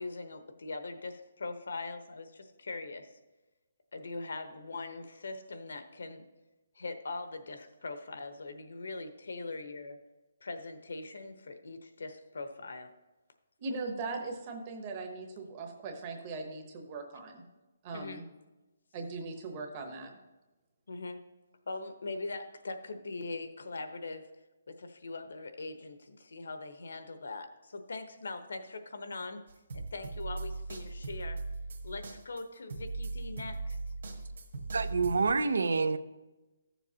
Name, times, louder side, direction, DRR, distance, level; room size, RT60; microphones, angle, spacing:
voice 1, 0.0-3.1 3.9-6.2 6.8-10.0 10.4-12.9 17.9-18.2 20.9-21.2 21.7-24.3 24.7-29.4 29.7-31.4 31.8-33.8, left 3 dB, 70° left, 8 dB, 1.0 m, -41 dB
voice 2, 13.6-17.4 17.8-18.2 18.9-20.1, right 3 dB, 20° right, 4 dB, 0.9 m, -39 dB
sound 1, 29.5-35.3, right 3 dB, 50° right, 1.6 m, -39 dB
voice 3, 34.7-36.0, right 4 dB, 75° right, 12 dB, 0.6 m, -27 dB
14.0 x 7.1 x 2.8 m, 1.1 s
hypercardioid pair, 180°, 0 cm